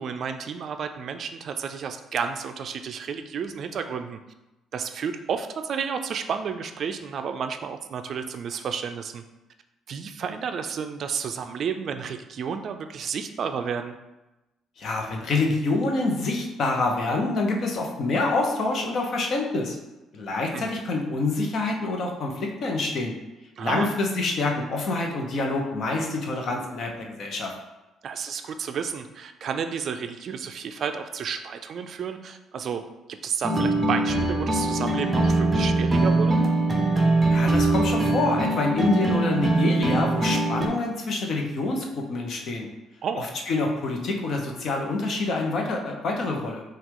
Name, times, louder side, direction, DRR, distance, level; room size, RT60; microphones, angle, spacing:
voice 1, 0.0-4.2 4.7-9.2 9.9-13.9 20.5-20.7 23.6-23.9 28.0-32.8 33.2-36.4 43.0-43.2, right 6 dB, 55° right, 7 dB, 0.3 m, -31 dB
voice 2, 14.8-19.8 20.1-23.1 23.6-27.5 37.3-42.7 43.2-46.6, left 3 dB, 55° left, 1 dB, 0.8 m, -26 dB
sound 1, 33.4-40.7, right 2 dB, 15° right, 0.7 m, -22 dB
5.7 x 2.4 x 3.7 m, 1.0 s
cardioid pair, 105°, 0 cm